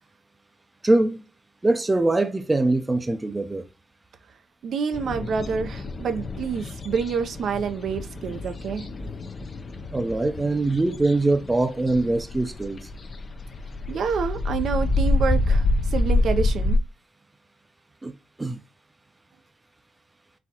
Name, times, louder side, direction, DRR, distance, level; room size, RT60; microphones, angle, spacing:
voice 1, 0.8-1.2 1.6-3.7 9.9-12.9 18.0-18.6, right 2 dB, 15° right, 0.6 m, -23 dB
voice 2, 4.6-8.9 13.9-15.7 15.9-16.8, right 6 dB, 60° right, 0.6 m, -27 dB
sound 1, 4.9-16.8, left 2 dB, 35° left, 0.5 m, -27 dB
4.1 x 3.6 x 2.9 m
cardioid pair, 90°, 0 cm